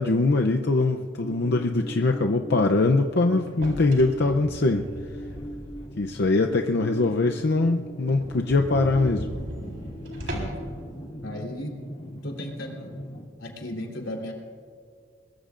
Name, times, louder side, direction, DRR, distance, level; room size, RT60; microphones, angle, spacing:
voice 1, 0.0-4.9 6.0-9.3, left 3 dB, 60° left, 4 dB, 0.6 m, -22 dB
sound 1, 1.2-13.2, equal, 30° left, 2.9 m, -39 dB
sound 2, 3.5-6.0 6.4-6.5 7.0-7.1 7.3-7.4 7.7-7.8 8.1-10.7, equal, 70° right, 3.9 m, -37 dB
voice 2, 11.2-11.7 12.1-12.9 13.4-14.3, left 1 dB, 90° left, 0 dB, 3.6 m, -35 dB
22.5 x 21.0 x 2.5 m, 2.2 s
head